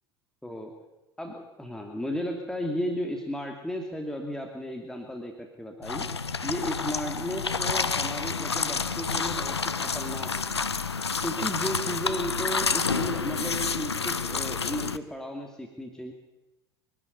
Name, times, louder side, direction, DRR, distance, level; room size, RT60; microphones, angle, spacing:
voice 1, 1.2-5.3 5.6-10.6 11.2-16.1, equal, 5° left, 2 dB, 2.7 m, -34 dB
sound 1, 5.8-15.0, left 5 dB, 90° left, 0.7 m, -29 dB
24.5 x 12.0 x 9.7 m, 1.0 s
figure-of-eight pair, 75°, 13 cm